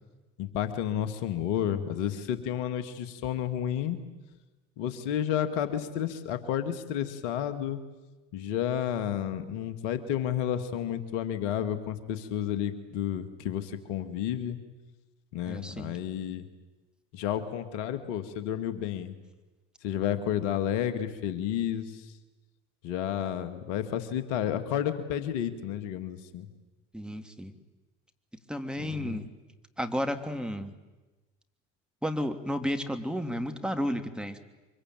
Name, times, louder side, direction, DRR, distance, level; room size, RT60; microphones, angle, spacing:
voice 1, 0.4-4.0 4.8-7.8 8.3-14.6 15.3-16.5 17.1-19.1 19.8-22.1 22.8-26.5 28.8-29.3, left 10 dB, 75° left, 10 dB, 2.0 m, -31 dB
voice 2, 15.5-15.9 26.9-27.5 28.5-29.2 29.8-30.7 32.0-34.4, equal, ahead, 6 dB, 2.7 m, -32 dB
24.5 x 23.0 x 9.0 m, 1.1 s
hypercardioid pair, 65°, 37 cm